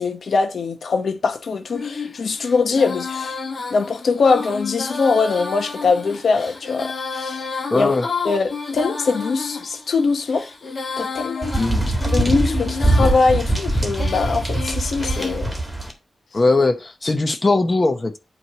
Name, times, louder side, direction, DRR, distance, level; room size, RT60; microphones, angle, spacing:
voice 1, 0.0-3.4 3.7-7.5 7.7-7.9 8.2-10.5 11.0-11.5 12.1-15.5, left 4 dB, 65° left, 1.0 m, -22 dB
Female singing, 1.7-15.4, left 4 dB, 45° left, 2.6 m, -31 dB
voice 2, 7.7-8.1 11.6-11.9 16.3-18.2, left 3 dB, 25° left, 1.0 m, -19 dB
sound 1, 11.4-15.9, right 1 dB, 5° right, 1.7 m, -22 dB
8.5 x 3.2 x 6.1 m
wide cardioid pair, 155°, 0 cm